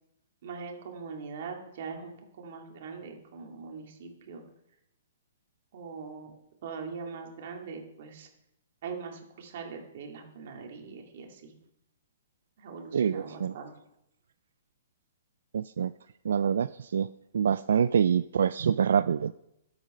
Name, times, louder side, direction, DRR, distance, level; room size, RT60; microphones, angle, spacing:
voice 1, 0.4-4.4 5.7-6.3 6.6-8.3 8.8-11.6 12.6-13.7, right 5 dB, 50° right, 2 dB, 2.3 m, -41 dB
voice 2, 12.9-13.5 15.5-15.9 16.2-17.1 17.3-19.3, right 7 dB, 75° right, 13 dB, 0.3 m, -26 dB
12.0 x 7.9 x 5.4 m, 0.82 s
hypercardioid pair, 165°, 0 cm